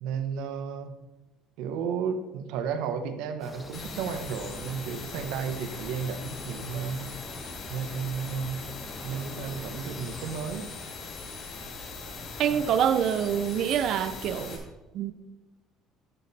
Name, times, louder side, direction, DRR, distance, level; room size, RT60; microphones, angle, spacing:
voice 1, 0.0-1.0 1.6-7.1 7.7-8.6 9.0-10.6 12.5-12.6, right 6 dB, 85° right, 8 dB, 1.0 m, -33 dB
sound 1, 3.4-10.4, left 1 dB, 10° left, 0.9 m, -46 dB
sound 2, 3.7-14.6, left 3 dB, 50° left, 2.2 m, -40 dB
voice 2, 12.4-14.6 14.9-15.1, right 8 dB, 50° right, 13 dB, 0.6 m, -26 dB
11.0 x 7.3 x 4.1 m, 1.1 s
cardioid pair, 165°, 0 cm